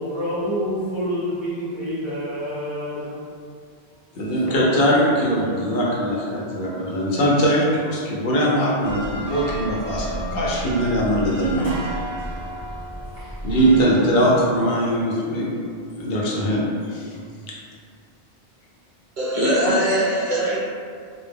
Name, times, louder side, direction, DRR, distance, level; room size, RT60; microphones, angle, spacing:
voice 1, 0.0-3.2 4.2-5.8 6.6-6.7 11.2-11.7 13.2-14.1, equal, 40° left, -12 dB, 0.4 m, -30 dB
voice 2, 4.2-11.8 13.4-15.5 16.0-16.6 16.9-17.1 17.5-17.6, equal, 70° left, -5 dB, 0.8 m, -21 dB
sound 1, 8.8-13.9, right 1 dB, 20° right, 0.8 m, -32 dB
voice 3, 19.2-20.6, equal, 55° right, -8 dB, 0.7 m, -21 dB
2.2 x 2.1 x 3.2 m, 2.2 s
omnidirectional pair, 1.1 m